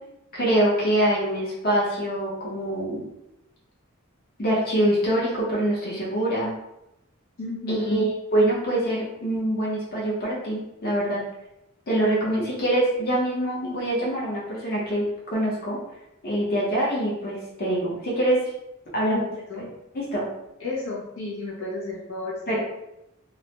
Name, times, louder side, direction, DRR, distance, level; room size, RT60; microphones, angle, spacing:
voice 1, 0.3-3.0 4.4-6.5 7.7-11.3 11.9-15.8 16.2-18.4 18.9-19.2 19.6-19.7 19.9-20.3 22.5-22.6, right 1 dB, 45° left, -5 dB, 0.8 m, -24 dB
voice 2, 7.4-8.1 19.0-19.7 20.6-22.6, left 2 dB, 70° left, -6 dB, 0.6 m, -32 dB
2.4 x 2.1 x 2.9 m, 0.88 s
head